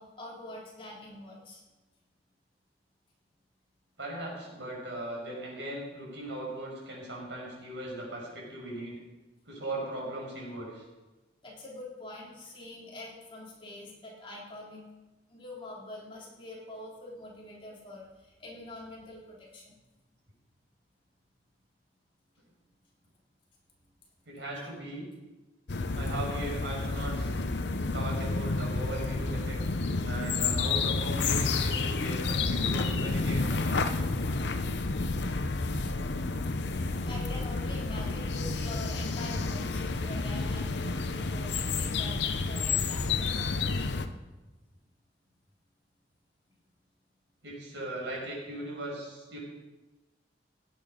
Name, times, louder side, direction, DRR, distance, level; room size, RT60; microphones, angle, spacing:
voice 1, 0.0-1.6 11.4-14.8 15.3-19.7 36.8-43.5, left 1 dB, 30° left, -4 dB, 3.5 m, -45 dB
voice 2, 4.0-9.0 9.5-10.8 24.3-25.1 25.9-27.4 27.9-29.6 30.0-33.9 47.4-49.4, right 1 dB, 80° right, -3 dB, 5.9 m, -38 dB
sound 1, 25.7-44.1, left 3 dB, 70° left, 0.8 m, -30 dB
17.0 x 9.0 x 5.2 m, 1.1 s
head